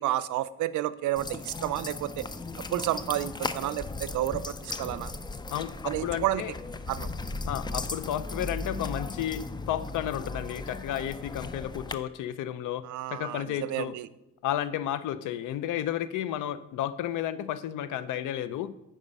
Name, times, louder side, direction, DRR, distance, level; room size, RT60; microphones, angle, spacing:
voice 1, 0.0-2.3 2.6-5.1 5.8-6.4 6.9-7.1 12.8-14.1, right 13 dB, 75° right, 17 dB, 0.5 m, -31 dB
sound 1, 1.2-11.9, left 3 dB, 15° left, 0.4 m, -37 dB
voice 2, 5.5-6.5 7.5-14.0 14.4-18.7, left 11 dB, 80° left, 15 dB, 0.6 m, -32 dB
8.6 x 5.3 x 5.3 m, 0.90 s
cardioid pair, 90°, 30 cm